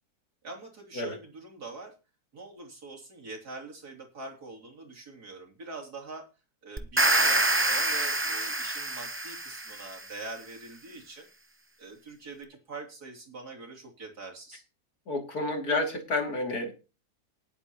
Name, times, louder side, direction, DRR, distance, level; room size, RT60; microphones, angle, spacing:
voice 1, 0.4-1.9 2.3-6.2 6.6-11.3 11.8-14.6, right 3 dB, 80° right, 1 dB, 3.7 m, -43 dB
sound 1, 6.8-9.9, right 2 dB, 15° right, 0.4 m, -26 dB
voice 2, 15.1-16.7, left 2 dB, 70° left, 3 dB, 3.2 m, -30 dB
19.5 x 8.7 x 3.0 m, 0.31 s
omnidirectional pair, 1.6 m